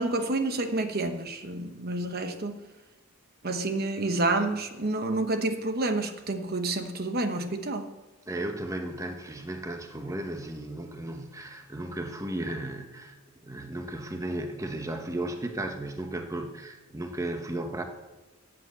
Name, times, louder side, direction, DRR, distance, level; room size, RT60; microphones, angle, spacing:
voice 1, 0.0-2.5 3.4-7.9, right 2 dB, 50° right, 7 dB, 1.1 m, -29 dB
voice 2, 8.3-13.2 13.4-17.8, right 1 dB, 15° right, 5 dB, 1.1 m, -35 dB
14.0 x 7.9 x 8.1 m, 1.1 s
head